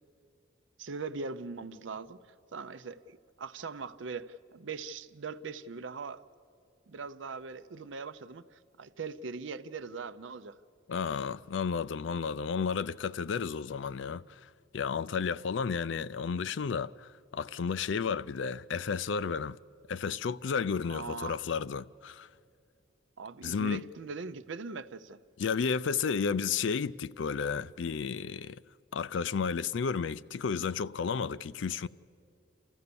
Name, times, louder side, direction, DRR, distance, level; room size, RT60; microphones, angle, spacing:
voice 1, 0.8-2.2 2.5-6.2 6.9-10.6 20.9-21.4 23.2-25.2, right 4 dB, 75° right, 0.6 m, -41 dB
voice 2, 10.9-14.2 14.7-16.9 17.3-19.6 19.9-22.3 23.4-23.8 25.4-28.6 28.9-31.9, left 6 dB, 70° left, 0.4 m, -32 dB
29.0 x 15.0 x 6.9 m
head